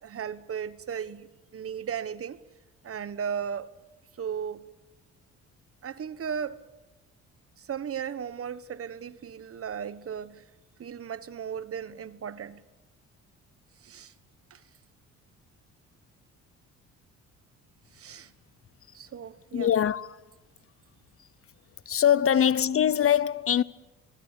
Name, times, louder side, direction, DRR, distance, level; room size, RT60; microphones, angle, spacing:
voice 1, 0.0-2.4 2.8-3.7 4.2-4.7 5.8-6.6 7.6-10.4 10.8-12.6 13.8-14.1 14.5-14.6 17.9-18.3 18.9-19.7, right 7 dB, 50° right, 1.2 m, -36 dB
voice 2, 19.5-20.2 21.9-23.6, left 9 dB, 45° left, 0.8 m, -23 dB
25.5 x 19.5 x 8.3 m
cardioid pair, 90°, 30 cm